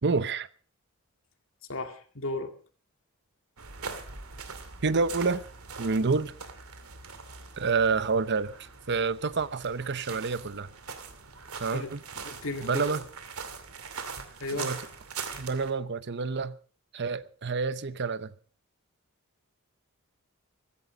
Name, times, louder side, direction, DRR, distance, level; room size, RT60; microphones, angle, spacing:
voice 1, 0.0-0.5 4.8-5.4 5.8-6.3 7.6-8.5 8.9-10.7 11.6-12.0 12.6-13.1 14.5-14.8 15.4-16.5 16.9-18.3, right 4 dB, 55° right, 0.8 m, -28 dB
voice 2, 1.7-2.5 11.7-11.9 12.2-12.9 14.4-14.7, left 2 dB, 65° left, 2.3 m, -34 dB
sound 1, 3.6-15.7, right 5 dB, 85° right, 2.5 m, -42 dB
15.5 x 15.0 x 5.0 m
head